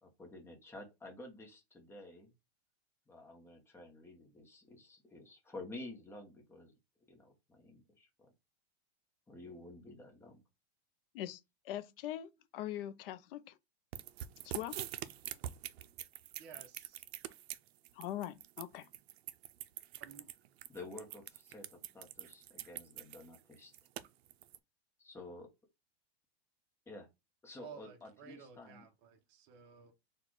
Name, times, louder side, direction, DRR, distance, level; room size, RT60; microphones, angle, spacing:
voice 1, 0.0-2.3 3.1-6.7 7.1-8.3 9.3-10.4 20.7-23.7 25.0-25.5 26.9-27.1 27.4-28.8, left 2 dB, 10° left, 0.9 m, -51 dB
voice 2, 11.1-13.6 14.4-14.8 17.9-18.9, left 12 dB, 60° left, 0.6 m, -42 dB
Cat Eating, 13.9-24.6, right 12 dB, 75° right, 0.5 m, -44 dB
voice 3, 16.4-17.0 20.0-20.3 27.6-29.9, right 6 dB, 35° right, 0.9 m, -54 dB
4.2 x 2.4 x 4.6 m
supercardioid pair, 155°, 32 cm